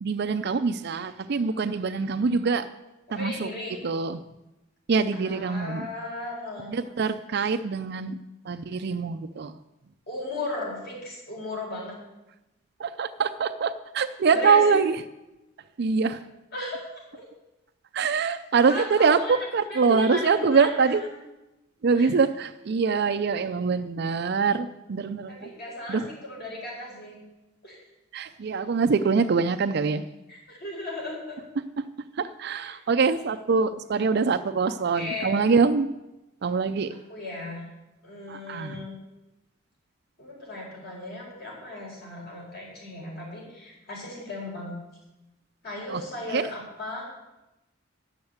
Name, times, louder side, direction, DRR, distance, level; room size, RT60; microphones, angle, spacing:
voice 1, 0.0-2.7 3.1-3.5 3.8-4.2 4.9-5.9 6.7-8.2 8.5-9.6 12.8-15.0 15.8-16.2 17.9-21.0 21.8-25.5 25.9-26.1 28.1-30.0 32.2-35.9 36.4-36.9 38.3-38.8 45.9-46.0 46.3-46.5, right 5 dB, 55° right, 9 dB, 0.4 m, -24 dB
voice 2, 3.1-3.8 5.1-6.7 10.1-12.0 14.2-14.8 16.5-16.8 17.1-17.2 18.7-19.3 19.7-21.2 21.9-22.1 25.3-27.2 27.6-27.8 30.3-31.4 32.6-32.7 34.6-35.4 37.1-37.7 38.0-39.0 40.2-44.8 45.6-47.1, left 2 dB, 55° left, -3 dB, 4.9 m, -36 dB
10.5 x 7.1 x 8.0 m, 0.98 s
head